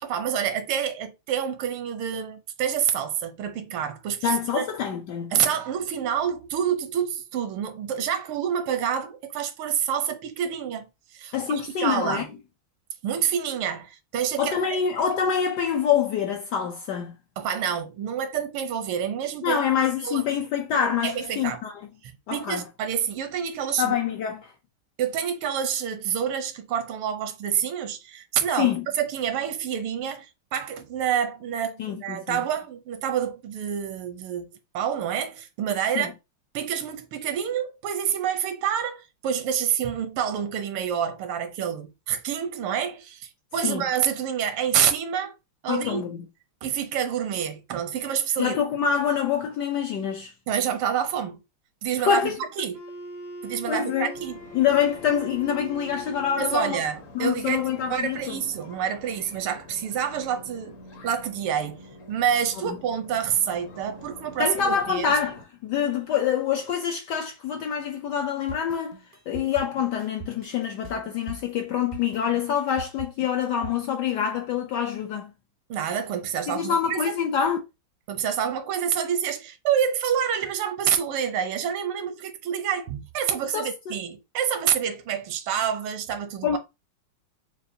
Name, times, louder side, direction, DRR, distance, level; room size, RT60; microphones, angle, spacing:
voice 1, 0.0-4.6 5.3-10.9 11.1-12.3 13.0-14.6 17.4-19.6 20.0-20.2 21.0-21.6 22.0-24.0 25.0-34.5 34.7-36.1 36.5-45.3 45.6-46.0 46.6-48.6 50.5-51.4 51.8-52.8 53.4-54.4 56.4-60.8 61.0-65.1 75.7-77.1 78.1-86.6, right 8 dB, 85° right, 1.6 m, -27 dB
voice 2, 4.2-5.4 11.3-12.2 14.4-17.2 19.4-21.8 22.3-22.6 23.8-24.5 28.6-28.9 31.8-32.4 36.0-36.1 43.6-43.8 45.7-46.2 48.4-50.3 52.0-52.4 53.7-54.1 54.5-56.8 57.1-58.4 62.7-62.8 64.4-69.0 69.3-75.3 76.5-77.6 83.5-84.0 86.4-86.6, left 8 dB, 75° left, 1.0 m, -26 dB
Wind instrument woodwind instrument, 52.7-56.9, right 1 dB, 20° left, 0.5 m, -41 dB
sound 1, 54.1-65.4, left 2 dB, 55° left, 1.0 m, -47 dB
sound 2, 68.5-73.7, right 5 dB, 40° right, 0.5 m, -41 dB
6.6 x 2.4 x 2.6 m
omnidirectional pair, 2.3 m